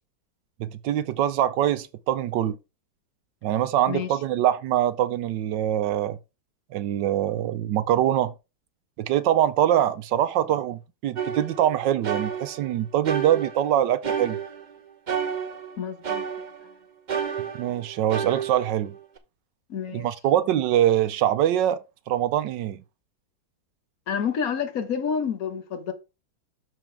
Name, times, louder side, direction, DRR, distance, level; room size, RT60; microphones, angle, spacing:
voice 1, 0.6-2.6 3.4-6.2 6.7-8.3 9.0-14.4 17.5-18.9 19.9-21.8 22.1-22.8, right 11 dB, 75° right, 1.2 m, -23 dB
sound 1, 11.2-12.7 13.0-14.8 15.1-16.7 17.1-19.2, right 7 dB, 50° right, 0.5 m, -31 dB
voice 2, 15.8-16.3 19.7-20.1 24.1-25.9, left 7 dB, 55° left, 1.5 m, -28 dB
12.5 x 4.3 x 3.4 m
omnidirectional pair, 2.1 m